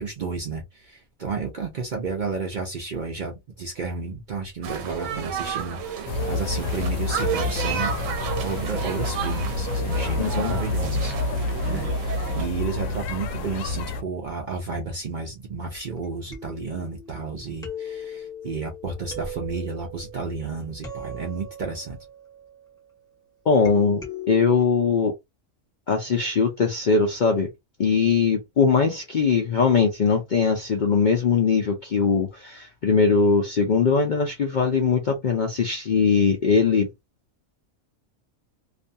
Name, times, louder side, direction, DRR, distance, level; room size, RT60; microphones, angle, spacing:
voice 1, 0.0-7.9 8.4-11.1 11.6-22.0, right 4 dB, 55° right, 0.5 m, -32 dB
sound 1, 4.6-12.5, right 7 dB, 70° right, 1.0 m, -31 dB
sound 2, 6.1-14.0, left 3 dB, 80° left, 1.0 m, -28 dB
voice 2, 10.2-10.5 23.5-25.1 25.9-27.5 27.8-36.9, left 5 dB, 60° left, 0.5 m, -21 dB
sound 3, 16.0-16.1 16.3-23.1 23.6-24.9, left 2 dB, 5° left, 1.0 m, -39 dB
2.6 x 2.2 x 2.6 m
omnidirectional pair, 1.4 m